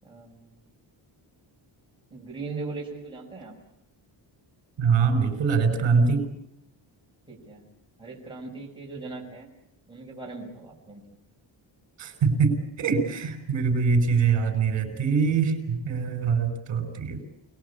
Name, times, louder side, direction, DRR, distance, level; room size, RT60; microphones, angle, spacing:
voice 1, 0.0-0.6 2.1-3.6 7.3-7.6 8.0-9.5 9.9-11.0, right 3 dB, 10° right, -3 dB, 6.3 m, -39 dB
voice 2, 4.8-6.3 12.0-17.2, right 5 dB, 65° right, 5 dB, 6.5 m, -23 dB
28.5 x 20.0 x 8.7 m, 0.79 s
wide cardioid pair, 160°, 47 cm